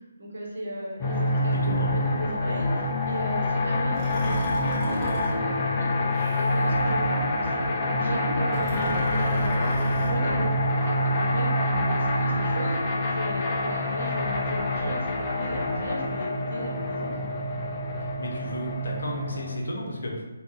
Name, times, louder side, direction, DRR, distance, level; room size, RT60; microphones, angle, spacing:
voice 1, 0.2-9.8 10.0-17.3, right 1 dB, 55° right, -3 dB, 0.9 m, -36 dB
sound 1, 1.0-19.6, left 1 dB, 20° left, 0.3 m, -26 dB
voice 2, 1.5-2.0 18.0-20.2, left 1 dB, 60° left, -2 dB, 0.7 m, -33 dB
Breathing, 3.9-5.3 6.1-6.8 8.4-10.2, right 1 dB, 10° right, 0.8 m, -37 dB
3.8 x 2.1 x 2.4 m, 1.1 s
figure-of-eight pair, 145°, 0 cm